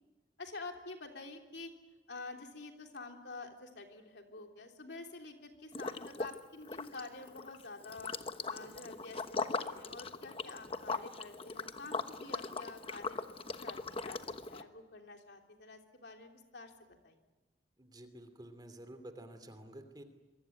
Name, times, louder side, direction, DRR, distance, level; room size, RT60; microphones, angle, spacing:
voice 1, 0.4-1.7 2.1-8.1 8.5-13.2 13.5-17.2, left 3 dB, 65° left, 3 dB, 3.4 m, -48 dB
Liquid, 5.7-6.4 6.6-14.6, left 4 dB, 30° left, 1.1 m, -40 dB
voice 2, 17.8-20.0, right 1 dB, 25° right, 8 dB, 2.7 m, -50 dB
27.0 x 23.5 x 9.4 m, 1.2 s
head